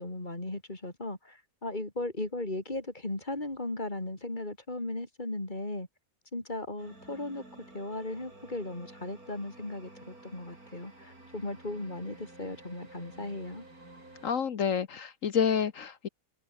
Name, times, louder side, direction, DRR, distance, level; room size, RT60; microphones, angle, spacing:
voice 1, 0.0-5.9 6.3-7.4 7.7-13.7, left 2 dB, 30° left, 4.1 m, -37 dB
sound 1, 6.8-14.3, right 2 dB, 80° right, 7.8 m, -52 dB
voice 2, 14.2-16.1, left 7 dB, 65° left, 1.4 m, -29 dB
omnidirectional pair, 1.5 m